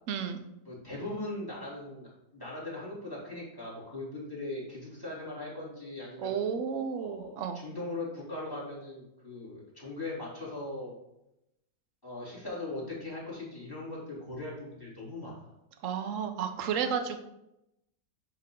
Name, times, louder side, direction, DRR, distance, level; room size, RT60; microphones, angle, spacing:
voice 1, 0.1-0.4 6.2-7.6 15.8-17.2, right 7 dB, 60° right, 7 dB, 0.9 m, -32 dB
voice 2, 0.7-6.3 7.0-11.0 12.0-15.5, left 2 dB, 10° left, -6 dB, 2.5 m, -40 dB
10.0 x 3.5 x 3.7 m, 0.86 s
omnidirectional pair, 2.0 m